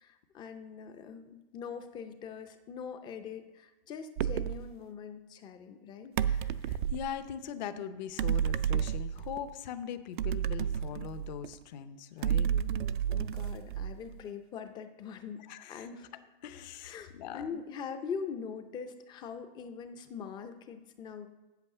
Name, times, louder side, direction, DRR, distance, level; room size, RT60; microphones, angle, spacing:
voice 1, 0.0-6.2 12.4-15.4 15.7-16.2 16.8-21.3, left 6 dB, 15° left, 8 dB, 0.5 m, -42 dB
sound 1, 4.2-4.6 6.2-7.1 8.2-9.4 10.2-11.5 12.2-14.1, right 9 dB, 50° right, 0.4 m, -31 dB
voice 2, 6.2-12.5 15.5-15.9 16.4-17.4, left 9 dB, 45° left, 11 dB, 0.8 m, -41 dB
8.2 x 7.7 x 6.6 m, 1.1 s
hypercardioid pair, 155°, 31 cm